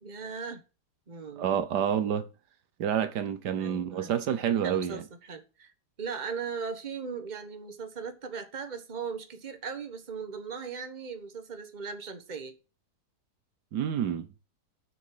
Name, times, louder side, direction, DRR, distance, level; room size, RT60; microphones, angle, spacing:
voice 1, 0.0-0.6 1.1-1.6 3.5-4.2 4.6-5.7 6.0-12.6, right 5 dB, 30° right, 1.4 m, -38 dB
voice 2, 1.4-2.3 2.8-5.0 13.7-14.3, right 9 dB, 80° right, 1.6 m, -28 dB
6.9 x 6.6 x 7.6 m
omnidirectional pair, 1.8 m